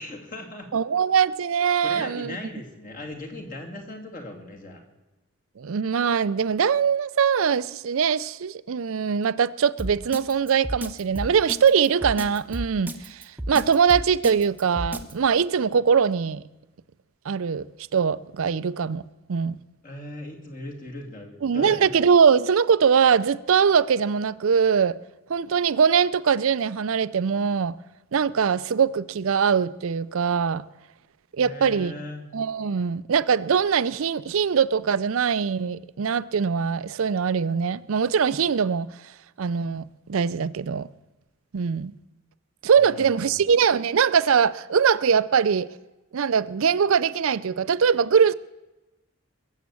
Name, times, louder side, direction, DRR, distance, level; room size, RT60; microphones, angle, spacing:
voice 1, 0.0-0.7 1.8-4.8 19.8-21.9 31.4-32.3 42.7-43.4, left 1 dB, 40° left, 2.6 m, -38 dB
voice 2, 0.7-2.4 5.6-16.4 17.3-17.7 17.9-19.0 19.3-19.6 21.4-25.0 25.3-27.7 28.1-30.6 31.3-31.9 32.3-38.9 39.4-40.9 41.5-41.9 42.6-45.7 46.1-48.3, right 6 dB, 70° right, 0.5 m, -22 dB
Drum kit, 9.8-15.1, right 1 dB, 10° right, 0.9 m, -32 dB
21.5 x 7.3 x 8.4 m
head